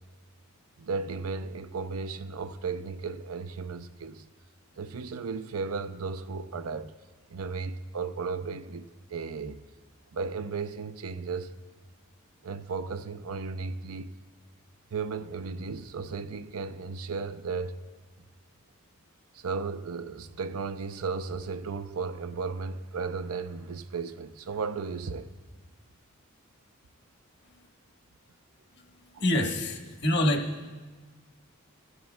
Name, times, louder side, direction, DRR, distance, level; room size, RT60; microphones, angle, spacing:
voice 1, 0.8-4.3 4.8-6.9 7.3-9.6 10.1-11.6 12.4-14.1 14.9-17.8 19.3-25.3 29.1-29.2, right 4 dB, 90° right, 0.6 m, -35 dB
voice 2, 28.7-30.7, left 1 dB, 50° left, 1.3 m, -28 dB
20.0 x 15.0 x 2.2 m
head